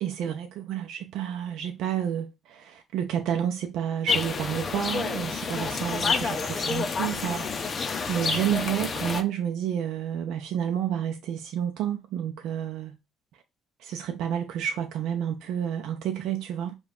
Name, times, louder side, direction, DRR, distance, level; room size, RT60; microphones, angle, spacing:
voice 1, 0.0-12.9 13.8-16.7, right 9 dB, 75° right, 0.5 m, -30 dB
sound 1, 4.1-9.2, left 5 dB, 35° left, 0.5 m, -29 dB
5.1 x 2.3 x 2.4 m
cardioid pair, 100°, 0 cm